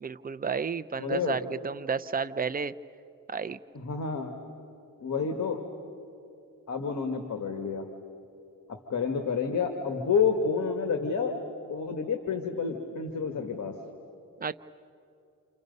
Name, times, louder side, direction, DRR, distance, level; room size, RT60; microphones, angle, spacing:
voice 1, 0.0-2.7 3.3-3.6 14.4-14.5, right 5 dB, 25° right, 11 dB, 0.5 m, -31 dB
voice 2, 1.0-1.4 3.7-4.4 5.0-5.6 6.7-7.8 8.9-11.4 11.7-13.8, left 5 dB, 55° left, 4 dB, 1.8 m, -29 dB
28.5 x 28.0 x 5.4 m, 2.6 s
cardioid pair, 105°, 35 cm